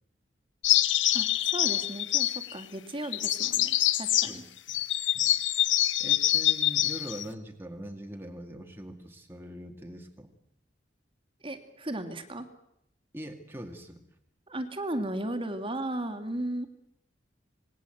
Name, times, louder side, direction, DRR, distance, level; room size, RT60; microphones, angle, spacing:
sound 1, 0.6-2.6 3.0-4.3 4.7-7.2, left 13 dB, 90° left, 1.2 m, -25 dB
voice 1, 1.1-4.4 11.4-12.5 14.5-16.7, right 1 dB, 30° right, 8 dB, 2.4 m, -35 dB
voice 2, 4.1-4.4 5.1-5.3 6.0-10.3 13.1-14.0, equal, 15° right, 3 dB, 2.1 m, -42 dB
27.0 x 20.5 x 8.0 m, 0.79 s
head